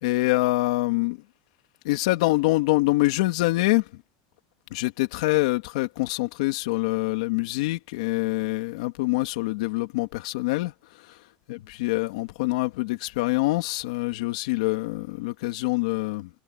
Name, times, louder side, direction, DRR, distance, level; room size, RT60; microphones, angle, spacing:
voice 1, 0.0-1.2 1.8-3.8 4.7-10.7 11.0-11.1 11.5-16.3, left 20 dB, 75° left, 2.7 m, -25 dB
cardioid pair, 180°, 3 cm